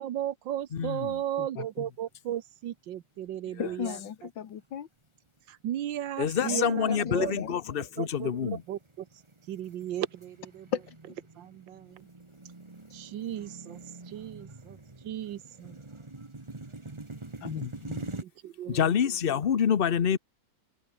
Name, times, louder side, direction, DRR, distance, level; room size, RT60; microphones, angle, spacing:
voice 1, 0.0-4.0 5.5-7.3 7.8-9.1 9.5-10.7 11.4-12.0 12.9-13.8 14.1-15.8 18.1-18.9, right 11 dB, 90° right, 1.7 m, -35 dB
voice 2, 0.7-1.2 6.2-8.6 18.7-20.2, left 8 dB, 40° left, 0.8 m, -27 dB
voice 3, 1.4-1.9 3.6-4.9 6.5-7.5 10.7-11.0 17.4-18.1, left 9 dB, 85° left, 2.1 m, -36 dB
sound 1, 1.8-2.3 2.7-2.8 3.5-4.0 4.5-4.8 5.4-18.2, right 2 dB, 15° right, 1.4 m, -45 dB
omnidirectional pair, 1.9 m